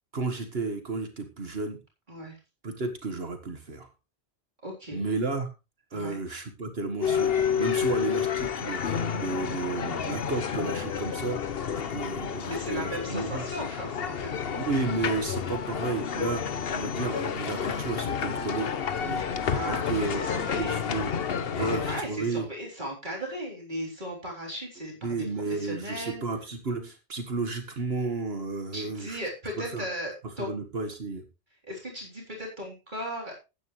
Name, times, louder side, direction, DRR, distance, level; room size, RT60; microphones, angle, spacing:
voice 1, 0.1-1.8 2.6-3.9 4.9-5.5 5.9-11.4 11.9-13.4 14.5-16.4 16.7-18.7 19.0-19.2 19.6-20.2 20.5-21.1 21.5-22.5 25.0-29.2 29.7-29.8 30.4-31.2, right 3 dB, 70° right, 6 dB, 1.8 m, -32 dB
voice 2, 4.6-5.0 5.9-6.2 12.5-14.5 19.5-20.8 21.6-26.2 28.7-30.5 31.6-33.3, equal, 50° right, -2 dB, 4.0 m, -36 dB
sound 1, 7.0-22.0, left 7 dB, 65° left, 1.1 m, -30 dB
14.5 x 9.6 x 3.2 m, 0.28 s
omnidirectional pair, 1.1 m